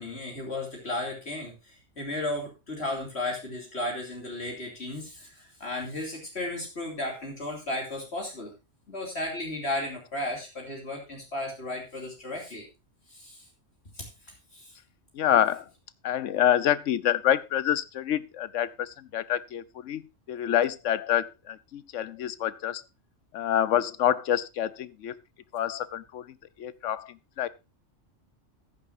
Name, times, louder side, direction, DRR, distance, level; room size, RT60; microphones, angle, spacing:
voice 1, 0.0-8.5 8.9-12.6 13.1-13.4 13.9-14.1 14.5-14.7, left 1 dB, 60° left, 0 dB, 3.0 m, -34 dB
voice 2, 15.1-15.7 16.0-22.8 23.3-25.2 25.5-26.3 26.6-27.5, left 10 dB, 80° left, 18 dB, 1.1 m, -27 dB
14.5 x 9.9 x 2.6 m, 0.26 s
omnidirectional pair, 1.3 m